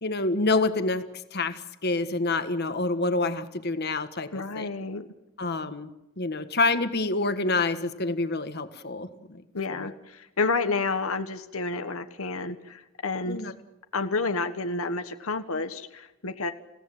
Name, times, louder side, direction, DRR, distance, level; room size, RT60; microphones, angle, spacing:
voice 1, 0.0-1.0 1.3-4.7 5.4-5.9 6.2-9.4 9.7-9.9 13.2-13.5, left 3 dB, 50° left, 10 dB, 1.5 m, -27 dB
voice 2, 4.3-5.1 9.5-13.4 13.9-16.5, left 3 dB, 90° left, 8 dB, 1.3 m, -30 dB
29.0 x 16.5 x 7.8 m, 0.95 s
head